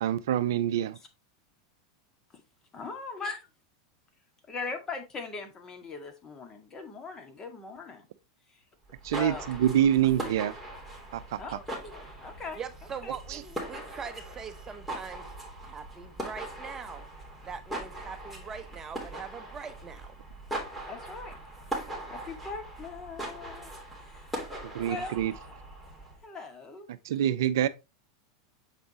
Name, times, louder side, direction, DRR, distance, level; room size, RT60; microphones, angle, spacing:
voice 1, 0.0-1.0 9.0-10.5 11.1-11.4 13.3-13.4 24.6-25.3 26.9-27.7, right 11 dB, 70° right, 0.5 m, -26 dB
voice 2, 2.7-3.5 4.5-8.1 8.5-8.6 9.2-9.5 11.4-12.6 13.0-13.8 20.9-21.3 22.1-23.7 24.0-24.4 24.9-25.2 26.2-26.9, left 4 dB, 25° left, 1.9 m, -40 dB
sound 1, 8.9-26.2, right 1 dB, ahead, 3.2 m, -40 dB
voice 3, 12.5-15.3 15.6-17.0 17.5-20.1, right 6 dB, 25° right, 0.9 m, -42 dB
7.4 x 5.2 x 3.0 m
hypercardioid pair, 95°, 2 cm